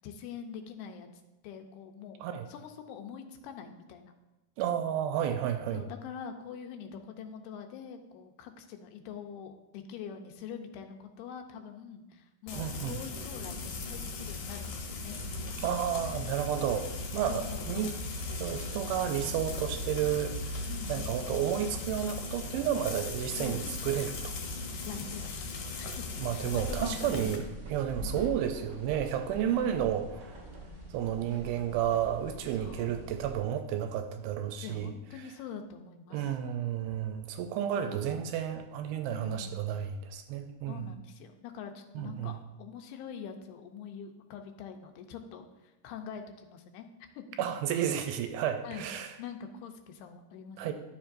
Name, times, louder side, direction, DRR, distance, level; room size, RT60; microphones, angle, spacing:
voice 1, 0.0-1.1 1.4-4.1 5.7-15.2 15.4-15.5 17.2-17.9 20.7-21.5 23.3-23.7 24.8-25.5 25.8-26.1 26.3-27.5 28.0-28.4 29.5-30.1 32.5-33.0 34.6-36.3 37.7-38.2 39.1-39.7 40.7-46.9 47.2-47.3 47.7-47.9 48.6-48.9 49.2-50.7, left 7 dB, 85° left, 6 dB, 2.7 m, -44 dB
voice 2, 4.6-5.8 12.5-13.0 15.6-17.9 18.3-24.4 26.2-27.4 27.7-30.4 30.9-34.9 36.1-40.9 42.0-42.4 47.4-49.1 50.6-50.7, right 10 dB, 80° right, 7 dB, 2.3 m, -32 dB
Frying (food), 12.5-27.4, left 3 dB, 70° left, 2.0 m, -38 dB
sound 1, 26.4-33.4, right 2 dB, 30° right, 1.6 m, -43 dB
12.0 x 7.1 x 2.5 m, 1.0 s
omnidirectional pair, 4.6 m